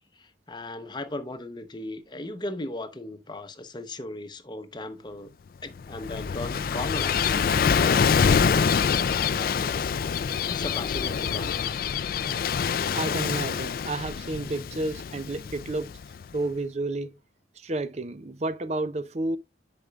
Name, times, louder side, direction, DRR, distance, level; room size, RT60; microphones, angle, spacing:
voice 1, 0.2-5.3 5.6-9.9 10.4-11.9, left 2 dB, 25° left, 0.8 m, -37 dB
Gull seagull / Waves surf, 5.7-16.3, left 6 dB, 50° left, 0.3 m, -25 dB
voice 2, 12.9-16.0 16.3-17.2 17.6-19.4, right 2 dB, 35° right, 0.5 m, -31 dB
9.9 x 5.1 x 2.4 m
head